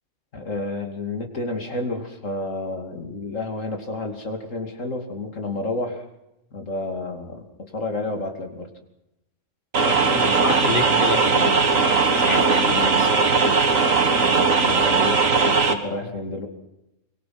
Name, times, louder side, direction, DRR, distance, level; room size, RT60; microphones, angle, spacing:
voice 1, 0.3-6.0 6.5-8.7 14.3-15.2 15.5-16.5, left 2 dB, 75° left, 4 dB, 3.0 m, -30 dB
sound 1, 9.7-15.7, right 4 dB, 90° right, 2.2 m, -19 dB
voice 2, 9.8-13.3, left 3 dB, 40° left, 5 dB, 2.2 m, -29 dB
24.0 x 23.5 x 6.0 m, 0.90 s
omnidirectional pair, 1.3 m